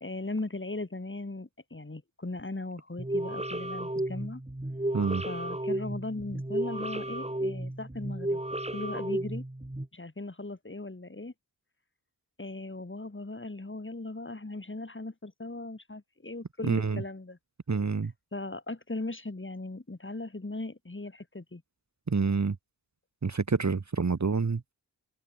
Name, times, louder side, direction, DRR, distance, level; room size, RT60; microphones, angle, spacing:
voice 1, 0.0-4.4 5.2-8.4 8.7-9.4 9.9-11.3 12.4-17.4 18.3-21.6, left 2 dB, 25° left, 2.6 m, -38 dB
sound 1, 3.0-9.9, right 1 dB, 15° right, 3.5 m, -33 dB
voice 2, 4.9-5.2 16.6-17.0 17.7-18.1 22.1-22.6 23.2-24.7, right 4 dB, 40° right, 1.3 m, -27 dB
open air
cardioid pair, 45°, 44 cm